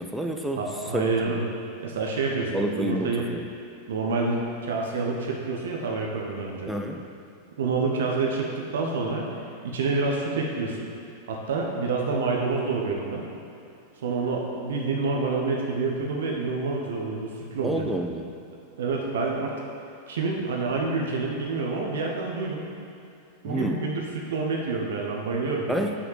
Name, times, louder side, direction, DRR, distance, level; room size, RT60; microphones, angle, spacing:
voice 1, 0.0-0.6 0.9-1.3 2.5-3.4 6.7-7.1 17.6-18.3 23.4-23.8 25.7-25.9, equal, ahead, 2 dB, 0.6 m, -29 dB
voice 2, 0.6-1.4 1.8-3.3 3.9-6.7 7.6-10.9 11.3-13.3 14.0-17.8 18.8-19.5 20.1-22.6 23.4-25.8, right 3 dB, 60° right, -1 dB, 1.0 m, -28 dB
5.9 x 4.9 x 6.6 m, 2.6 s
figure-of-eight pair, 90°, 0 cm